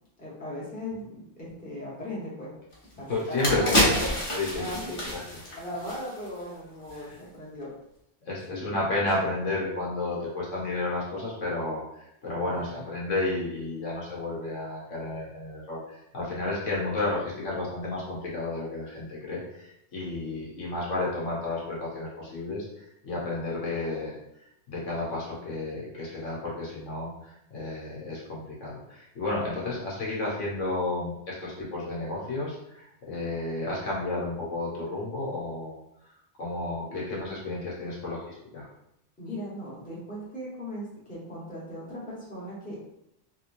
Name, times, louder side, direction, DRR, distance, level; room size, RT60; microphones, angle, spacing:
voice 1, 0.2-2.5 2.9-4.2 4.5-5.0 5.5-7.7 8.5-8.7 12.4-12.9 39.2-42.8, left 1 dB, 5° left, -7 dB, 1.0 m, -37 dB
sound 1, 2.7-2.8 3.2-6.5 6.8-7.0, left 1 dB, 30° left, 0.8 m, -28 dB
voice 2, 3.1-3.7 4.4-4.7 5.1-5.2 6.9-7.2 8.2-24.2 24.7-35.8 36.4-38.7, left 2 dB, 75° left, -5 dB, 1.3 m, -32 dB
3.3 x 2.9 x 2.6 m, 0.81 s
omnidirectional pair, 1.3 m